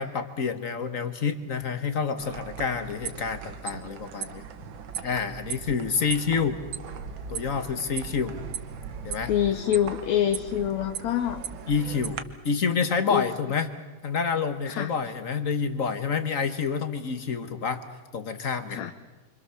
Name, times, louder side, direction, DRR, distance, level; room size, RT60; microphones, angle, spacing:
voice 1, 0.0-4.4 5.0-6.6 7.3-8.4 9.0-9.3 11.7-12.2 12.4-13.7 14.0-17.8 18.1-18.8, left 5 dB, 45° left, 10 dB, 1.1 m, -28 dB
sound 1, 2.2-12.2, right 7 dB, 55° right, 1.6 m, -38 dB
voice 2, 9.3-11.4 13.1-13.3 14.7-14.9 18.7-18.9, left 11 dB, 75° left, 7 dB, 2.3 m, -26 dB
28.0 x 26.0 x 7.0 m, 1.2 s
omnidirectional pair, 3.3 m